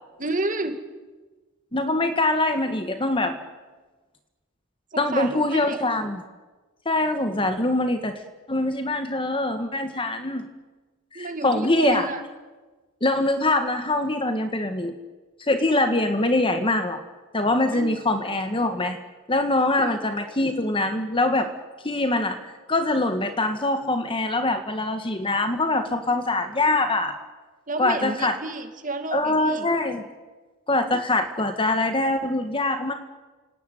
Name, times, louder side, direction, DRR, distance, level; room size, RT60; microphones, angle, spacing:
voice 1, 0.2-0.8 4.9-5.8 11.1-12.2 17.7-18.0 19.8-19.9 27.7-29.7, right 2 dB, 40° right, 7 dB, 2.4 m, -30 dB
voice 2, 1.7-3.3 5.0-6.2 6.8-8.1 8.5-10.5 11.1-12.1 13.0-14.9 15.4-17.0 17.3-19.0 19.3-21.5 21.8-27.1 27.8-28.4 29.1-30.0 30.7-32.9, left 2 dB, 25° left, 7 dB, 1.6 m, -23 dB
28.0 x 18.5 x 9.3 m, 1.3 s
head